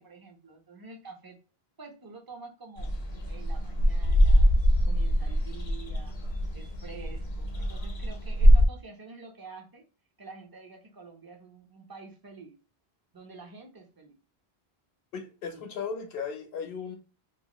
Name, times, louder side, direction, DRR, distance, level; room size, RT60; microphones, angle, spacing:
voice 1, 0.0-1.4 1.8-2.9 3.3-4.5 4.8-6.2 6.5-9.9 10.2-12.6 13.1-14.2 15.5-15.6, right 4 dB, 30° right, 2 dB, 0.4 m, -48 dB
sound 1, 2.8-8.7, equal, 40° left, 0.5 m, -23 dB
voice 2, 15.1-17.0, left 6 dB, 70° left, 6 dB, 0.8 m, -36 dB
2.7 x 2.5 x 2.9 m, 0.33 s
omnidirectional pair, 1.0 m